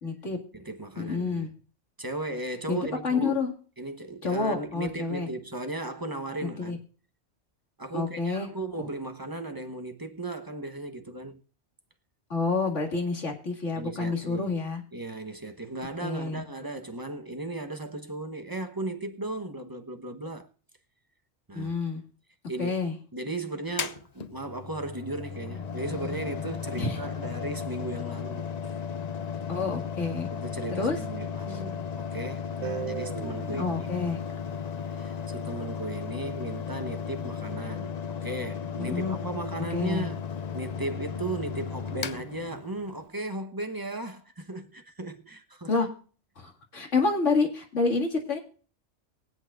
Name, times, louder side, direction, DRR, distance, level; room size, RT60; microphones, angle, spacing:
voice 1, 0.0-0.4 1.0-1.5 2.7-2.8 3.0-3.5 4.2-5.3 6.6-6.8 7.9-8.5 8.8-8.9 12.3-14.8 16.0-16.4 21.5-22.0 22.6-23.0 26.8-27.0 29.5-30.3 30.8-31.0 31.5-31.6 33.6-34.2 38.8-39.1 39.7-40.1 45.7-45.9 46.4-48.4, left 4 dB, 80° left, 2.4 m, -28 dB
voice 2, 0.5-1.5 2.0-3.4 3.8-6.8 7.8-11.4 13.8-14.5 14.9-20.5 21.5-21.7 22.5-22.8 23.1-28.7 30.3-33.9 34.9-37.9 38.2-40.2 40.5-45.7, right 2 dB, 20° right, 1.0 m, -36 dB
Mechanical fan, 23.7-43.1, left 7 dB, 45° left, 0.6 m, -35 dB
Guitar, 32.6-35.6, right 8 dB, 80° right, 1.2 m, -40 dB
22.5 x 8.2 x 2.5 m
omnidirectional pair, 1.2 m